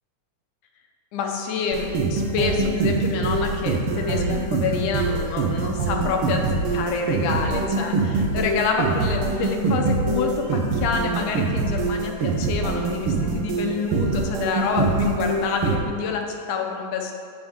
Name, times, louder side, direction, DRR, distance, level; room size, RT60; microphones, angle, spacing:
voice 1, 1.1-17.1, left 5 dB, 75° left, 2 dB, 2.3 m, -27 dB
sound 1, 1.7-15.8, right 3 dB, 85° right, 1.2 m, -24 dB
15.5 x 5.3 x 3.7 m, 2.3 s
omnidirectional pair, 3.7 m